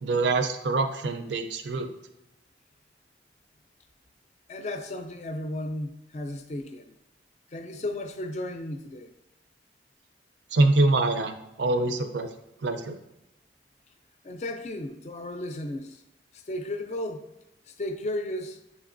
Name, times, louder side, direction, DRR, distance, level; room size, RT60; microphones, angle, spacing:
voice 1, 0.0-1.9 10.5-12.3 12.6-13.0, right 2 dB, 75° right, 0.5 m, -25 dB
voice 2, 4.5-7.0 7.5-9.1 14.2-16.0 16.3-17.3 17.7-18.6, left 1 dB, 40° left, 0.4 m, -34 dB
6.9 x 3.0 x 2.5 m
head